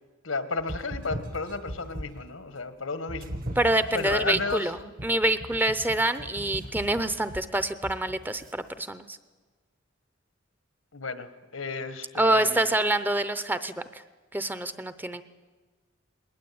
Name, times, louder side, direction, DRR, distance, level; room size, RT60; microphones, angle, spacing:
voice 1, 0.2-3.4 3.9-4.7 10.9-12.7, left 3 dB, 90° left, 12 dB, 1.6 m, -33 dB
sound 1, 0.6-2.3 3.1-8.5, equal, 45° right, 1.3 m, -39 dB
voice 2, 3.6-9.2 12.2-14.0 14.3-15.2, right 1 dB, 10° right, 13 dB, 0.7 m, -26 dB
20.5 x 19.0 x 8.7 m, 1.4 s
head